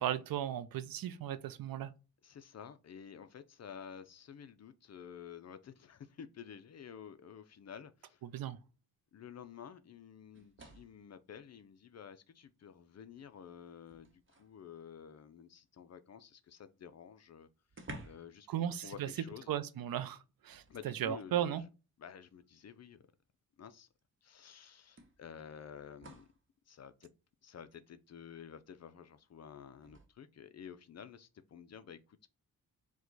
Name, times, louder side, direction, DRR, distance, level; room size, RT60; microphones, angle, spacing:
voice 1, 0.0-1.9 8.2-8.6 18.5-19.1 19.5-21.6, right 10 dB, 75° right, 0.5 m, -36 dB
voice 2, 2.2-8.2 9.1-17.5 18.0-19.5 20.7-21.6 22.0-23.0 23.6-23.9 24.2-26.3 26.7-27.1 27.4-32.3, left 8 dB, 45° left, 0.4 m, -51 dB
sound 1, 10.3-11.1 12.4-12.5 13.0-14.6 16.7-16.8 17.0-17.1 17.7-18.4 18.7-18.9 20.5-21.2 22.3-22.4 24.0-24.1 25.0-26.4 29.8-30.1, right 1 dB, 35° right, 0.9 m, -53 dB
4.8 x 2.2 x 3.9 m
wide cardioid pair, 105°, 36 cm